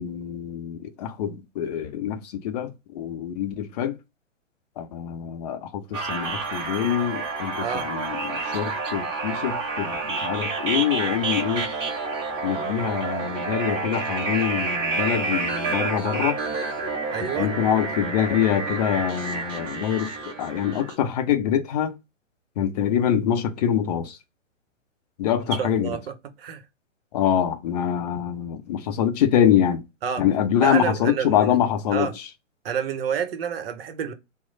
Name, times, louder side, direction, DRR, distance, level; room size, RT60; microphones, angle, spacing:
voice 1, 0.0-4.0 4.8-11.7 12.4-16.4 17.3-21.9 22.6-24.2 25.2-26.0 27.1-29.8 30.2-32.1, left 9 dB, 35° left, 0.5 m, -25 dB
sound 1, 5.9-21.0, right 4 dB, 15° right, 0.6 m, -29 dB
voice 2, 17.1-17.5 25.6-26.6 30.0-30.3 30.6-31.6 31.9-32.1 32.6-34.1, right 7 dB, 50° right, 0.7 m, -29 dB
3.0 x 2.0 x 3.9 m
figure-of-eight pair, 120°, 38 cm